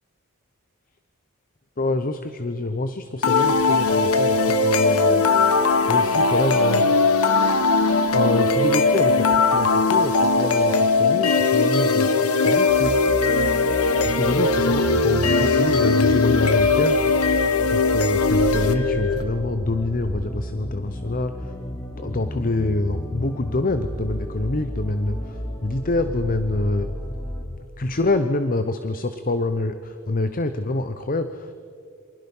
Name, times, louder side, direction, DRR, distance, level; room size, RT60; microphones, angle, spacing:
voice 1, 1.8-5.3 5.9-6.9 8.1-12.1 12.4-12.9 13.7-17.3 17.7-21.3 22.0-26.9 27.8-31.5, left 2 dB, 40° left, 10 dB, 0.8 m, -26 dB
sound 1, 3.2-19.2, left 3 dB, 80° left, 1.6 m, -19 dB
sound 2, 12.7-27.4, equal, 20° left, 3.1 m, -33 dB
28.5 x 25.0 x 5.5 m, 2.5 s
head